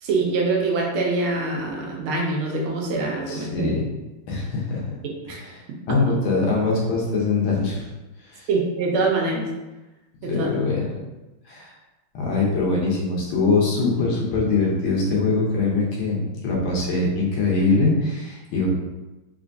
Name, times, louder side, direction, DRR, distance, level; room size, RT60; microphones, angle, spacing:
voice 1, 0.0-3.7 5.3-5.4 8.5-9.5 10.2-10.5, right 3 dB, 75° right, 0 dB, 1.5 m, -24 dB
voice 2, 3.3-3.8 4.3-4.8 5.3-5.6 5.9-7.8 8.2-8.5 10.2-10.8 11.5-11.7 12.1-18.7, left 3 dB, 75° left, -3 dB, 1.7 m, -23 dB
3.8 x 3.4 x 2.6 m, 1.1 s
omnidirectional pair, 2.4 m